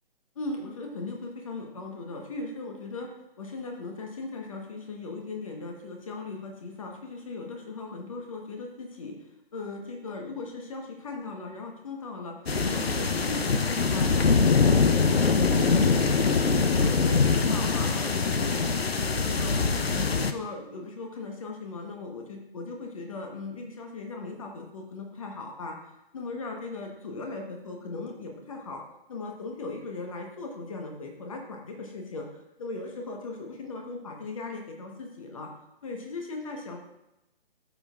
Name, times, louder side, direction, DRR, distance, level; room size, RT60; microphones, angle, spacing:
voice 1, 0.3-3.1 3.4-9.1 9.5-12.4 12.6-16.4 16.7-25.7 26.1-28.8 29.1-35.5 35.8-36.8, left 3 dB, 35° left, 2 dB, 1.1 m, -38 dB
sound 1, 12.5-20.3, left 4 dB, 75° left, 0.7 m, -23 dB
13.0 x 6.3 x 2.4 m, 0.90 s
figure-of-eight pair, 140°, 31 cm